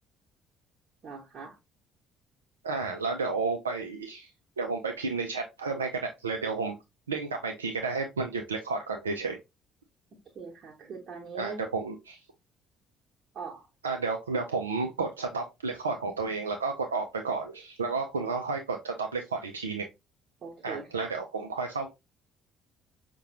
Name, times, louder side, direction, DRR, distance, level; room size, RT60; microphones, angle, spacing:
voice 1, 1.0-1.6 10.3-11.6 13.3-13.7 20.4-21.1, right 5 dB, 40° right, -3 dB, 0.9 m, -41 dB
voice 2, 2.6-4.3 4.6-6.8 7.1-9.4 11.3-12.2 13.8-19.8 20.6-21.9, right 4 dB, 80° right, 3 dB, 0.4 m, -32 dB
5.6 x 2.2 x 2.8 m, 0.23 s
figure-of-eight pair, 50°, 0 cm